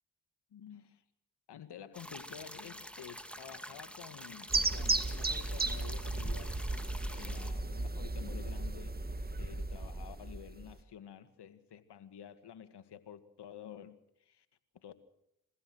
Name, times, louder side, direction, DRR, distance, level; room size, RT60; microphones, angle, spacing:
voice 1, 0.5-1.0 1.5-6.6 6.8-9.0 9.4-14.5 14.8-15.0, left 9 dB, 75° left, 2.0 m, -50 dB
sound 1, 1.9-7.5, equal, 5° left, 2.7 m, -48 dB
sound 2, 4.5-10.8, right 2 dB, 25° right, 1.8 m, -35 dB
28.0 x 15.5 x 6.3 m
supercardioid pair, 50°, 40 cm